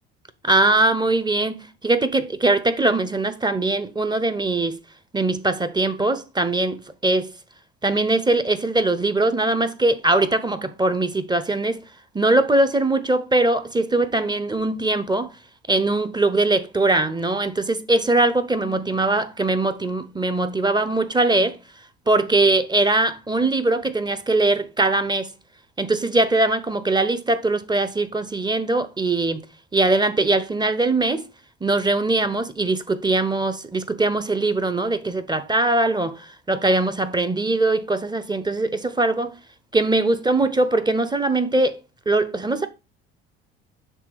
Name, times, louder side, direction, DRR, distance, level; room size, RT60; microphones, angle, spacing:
voice 1, 0.4-4.8 5.1-7.3 7.8-11.8 12.1-15.3 15.7-21.6 22.1-25.3 25.8-29.5 29.7-31.3 31.6-39.3 39.7-41.8 42.1-42.7, right 2 dB, 15° right, 0.8 m, -21 dB
6.9 x 3.5 x 4.7 m
hypercardioid pair, 60°, 32 cm